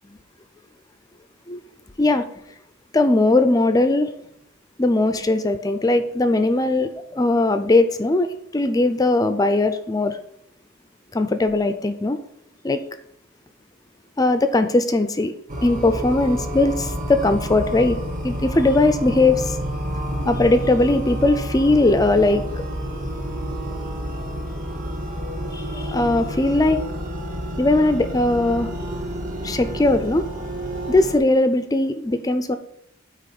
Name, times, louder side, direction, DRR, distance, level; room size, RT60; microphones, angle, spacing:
voice 1, 2.9-4.1 4.8-8.3 8.5-10.2 11.1-12.2 12.6-12.8 14.2-15.3 15.6-18.0 18.2-19.6 20.3-22.6 25.5-26.8 27.6-28.7 29.4-30.2 30.9-32.6, left 2 dB, 15° left, 9 dB, 0.4 m, -19 dB
sound 1, 15.5-31.2, equal, 40° right, 1.2 m, -29 dB
9.0 x 3.0 x 5.9 m, 0.72 s
head